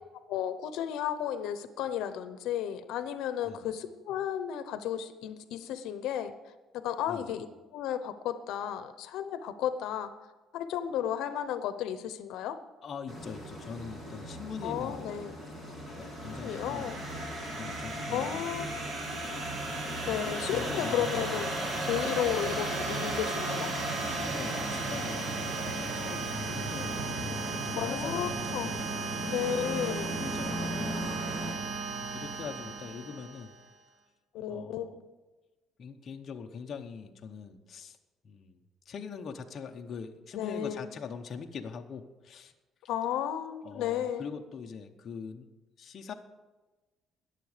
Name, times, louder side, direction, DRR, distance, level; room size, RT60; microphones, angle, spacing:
voice 1, 0.3-6.3 6.8-7.5 7.7-10.1 10.5-12.6 14.6-15.4 16.2-17.0 18.1-18.7 20.1-21.5 21.8-23.7 27.8-28.8 29.2-30.2 34.3-35.0 40.3-40.9 42.9-44.3, left 10 dB, 80° left, 11 dB, 0.8 m, -33 dB
voice 2, 12.8-15.4 16.0-17.0 17.6-18.4 20.5-21.5 24.2-25.5 25.9-28.9 30.2-31.2 32.1-33.5 34.5-35.0 35.8-38.0 38.2-38.6 38.9-42.5 43.6-45.5 45.8-46.1, left 6 dB, 35° left, 3 dB, 0.8 m, -42 dB
sound 1, 13.1-31.5, equal, 20° right, 2.5 m, -37 dB
sound 2, 16.1-33.7, right 4 dB, 60° right, 1.5 m, -37 dB
20.0 x 7.2 x 5.0 m, 1.2 s
cardioid pair, 175°, 0 cm